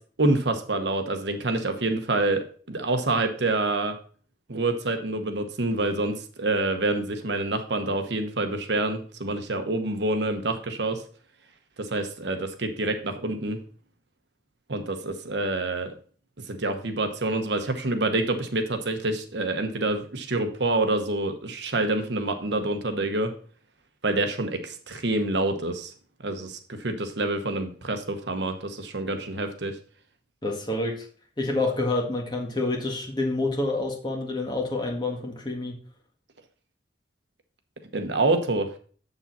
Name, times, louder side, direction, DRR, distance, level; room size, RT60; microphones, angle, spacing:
voice 1, 0.2-4.0 4.5-11.0 11.8-13.6 14.7-15.9 16.5-23.3 24.0-25.9 26.2-29.8 37.9-38.7, right 2 dB, 75° right, 7 dB, 1.1 m, -27 dB
voice 2, 30.4-31.1 31.4-35.7, left 2 dB, 25° left, 0 dB, 1.8 m, -28 dB
7.2 x 7.0 x 4.1 m, 0.42 s
head